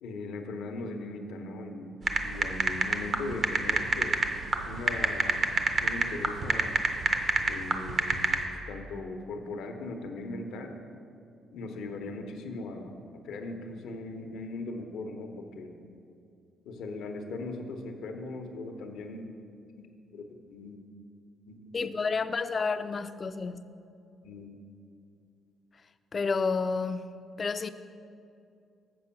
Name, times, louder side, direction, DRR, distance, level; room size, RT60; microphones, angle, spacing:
voice 1, 0.0-4.2 4.6-5.4 5.8-6.8 7.4-8.2 8.5-10.8 11.5-15.8 16.6-19.3 19.8-19.9 20.1-20.8 21.5-21.9 24.2-24.6, left 2 dB, 85° left, 0.8 m, -39 dB
sound 1, 2.1-8.4, right 4 dB, 50° right, 0.7 m, -26 dB
voice 2, 21.7-23.6 26.1-27.7, left 4 dB, 40° left, 0.3 m, -30 dB
7.7 x 5.2 x 5.7 m
cardioid pair, 90°, 0 cm